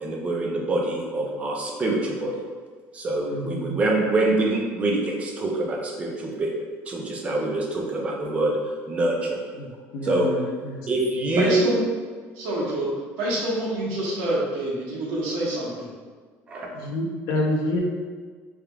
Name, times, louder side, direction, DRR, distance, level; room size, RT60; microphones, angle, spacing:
voice 1, 0.0-2.4 2.9-6.5 6.9-9.4 10.0-10.3 10.9-11.7 16.5-16.7, right 2 dB, 25° right, -1 dB, 0.6 m, -25 dB
voice 2, 3.3-3.8 9.6-9.7 9.9-10.9 16.8-17.8, left 1 dB, 70° left, 0 dB, 0.8 m, -28 dB
voice 3, 11.4-11.8 12.3-12.9 13.2-15.9, right 1 dB, 80° right, -5 dB, 1.3 m, -26 dB
4.7 x 3.6 x 2.3 m, 1.5 s
cardioid pair, 170°, 6 cm